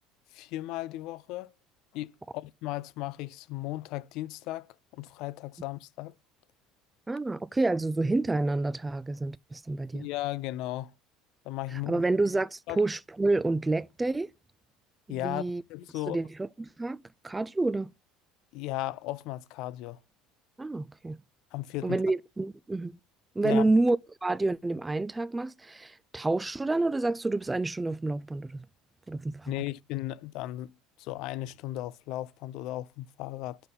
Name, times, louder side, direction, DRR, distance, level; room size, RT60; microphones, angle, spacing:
voice 1, 0.3-1.5 1.9-6.1 9.9-10.9 11.4-12.0 12.7-12.8 15.1-15.4 15.7-16.2 18.5-20.0 21.5-22.0 23.4-23.6 29.5-33.6, left 16 dB, 70° left, 0.4 m, -36 dB
voice 2, 7.1-10.1 11.9-14.3 15.1-15.6 16.1-17.9 20.6-21.2 21.8-23.0 23.4-24.0 24.2-28.7 29.1-29.5, right 2 dB, 15° right, 0.3 m, -28 dB
7.8 x 5.5 x 3.8 m
hypercardioid pair, 80°, 0 cm